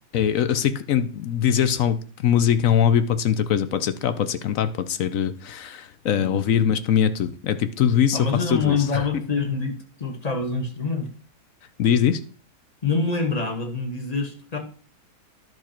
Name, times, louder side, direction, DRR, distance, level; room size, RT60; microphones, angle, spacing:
voice 1, 0.1-9.1 11.8-12.2, left 9 dB, 65° left, 12 dB, 0.9 m, -22 dB
voice 2, 8.1-11.1 12.8-14.6, left 4 dB, 25° left, 4 dB, 1.5 m, -26 dB
10.5 x 6.1 x 4.4 m, 0.43 s
omnidirectional pair, 1.8 m